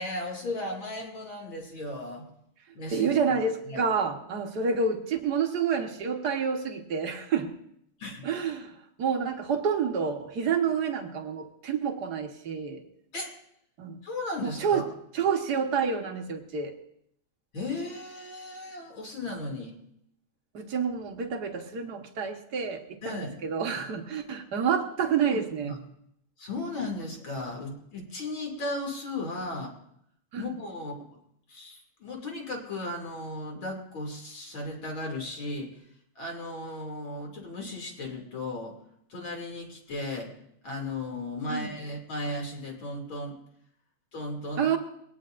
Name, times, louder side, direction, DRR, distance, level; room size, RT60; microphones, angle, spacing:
voice 1, 0.0-2.3 2.7-3.1 3.7-3.8 8.0-8.3 13.1-13.3 14.0-14.8 17.5-19.8 23.0-23.3 25.0-25.8 26.4-29.7 30.3-31.2 31.5-35.9 36.1-38.8 39.1-40.3 40.6-43.4 44.1-44.8, left 2 dB, 45° left, 1 dB, 3.2 m, -36 dB
voice 2, 2.7-7.6 8.2-12.8 13.8-14.0 14.4-14.9 15.1-16.8 20.5-25.8 30.3-30.4 41.5-41.7 44.6-44.8, right 6 dB, 50° right, 3 dB, 1.2 m, -29 dB
22.0 x 18.0 x 2.5 m, 0.71 s
omnidirectional pair, 3.3 m